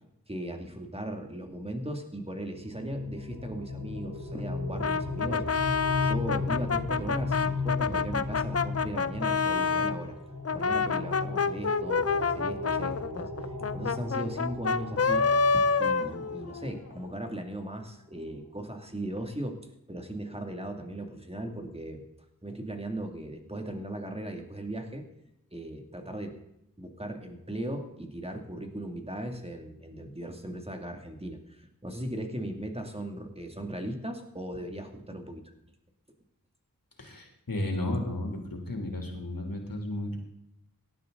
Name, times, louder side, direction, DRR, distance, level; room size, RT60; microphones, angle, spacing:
voice 1, 0.3-5.4 6.0-10.2 10.5-13.3 13.6-15.3 15.5-19.6 19.9-22.0 22.4-25.0 25.5-26.3 26.8-35.4, right 1 dB, 15° right, 4 dB, 2.5 m, -37 dB
sound 1, 2.5-17.1, left 3 dB, 80° right, 2.7 m, -36 dB
Brass instrument, 4.8-10.0 10.4-16.8, left 5 dB, 45° left, 0.6 m, -28 dB
voice 2, 37.0-38.4 38.7-40.2, left 1 dB, 90° left, 2 dB, 3.2 m, -33 dB
18.0 x 12.0 x 4.0 m, 0.80 s
wide cardioid pair, 50°, 34 cm